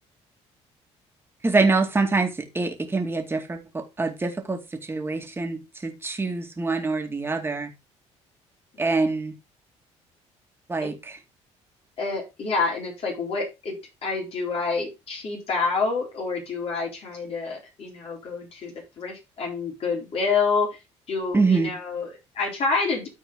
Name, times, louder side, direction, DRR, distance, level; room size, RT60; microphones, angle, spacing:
voice 1, 1.4-7.7 8.8-9.3 10.7-11.2 21.3-21.7, right 3 dB, 20° right, 2.3 m, -25 dB
voice 2, 12.0-13.8 14.0-20.8 21.1-23.1, left 4 dB, 55° left, 4.1 m, -28 dB
13.0 x 4.4 x 3.9 m
cardioid pair, 110°, 12 cm